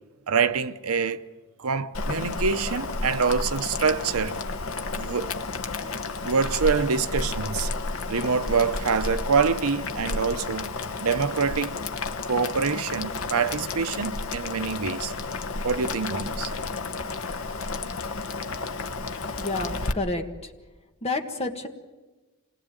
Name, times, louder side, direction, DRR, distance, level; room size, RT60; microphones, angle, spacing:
voice 1, 0.3-1.2 1.6-4.4 4.9-5.3 6.2-7.7 8.1-10.7 11.0-11.8 12.3-15.1 15.6-16.5, right 5 dB, 80° right, 0.8 m, -25 dB
Boiling, 1.9-19.9, left 3 dB, 70° left, 1.1 m, -32 dB
voice 2, 19.4-20.5 21.0-21.7, left 2 dB, 30° left, 1.6 m, -30 dB
26.5 x 19.5 x 9.0 m
head